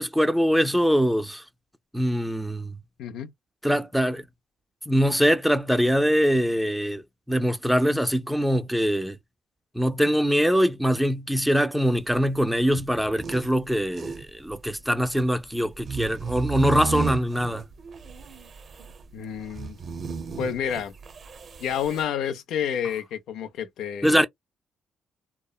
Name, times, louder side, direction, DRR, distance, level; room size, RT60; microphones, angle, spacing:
voice 1, 0.0-1.4 1.9-2.7 3.6-4.3 4.9-7.0 7.3-9.2 9.7-17.6 24.0-24.3, equal, ahead, 0.5 m, -23 dB
voice 2, 3.0-3.3 19.1-19.8 20.4-20.9 21.6-24.3, left 8 dB, 80° left, 0.5 m, -29 dB
sound 1, 11.9-22.0, right 5 dB, 50° right, 0.6 m, -34 dB
2.9 x 2.0 x 2.3 m
cardioid pair, 90°, 0 cm